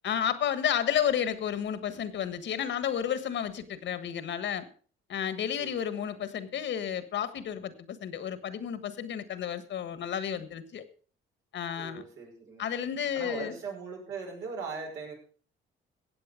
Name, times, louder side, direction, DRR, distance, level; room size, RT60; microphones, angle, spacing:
voice 1, 0.0-4.7 5.1-10.9 11.5-12.0 12.6-13.5, left 9 dB, 65° left, 12 dB, 1.5 m, -31 dB
voice 2, 5.6-6.2 11.7-12.7 13.1-15.1, right 4 dB, 80° right, 0 dB, 5.7 m, -40 dB
16.5 x 8.0 x 5.0 m, 0.42 s
cardioid pair, 90°, 20 cm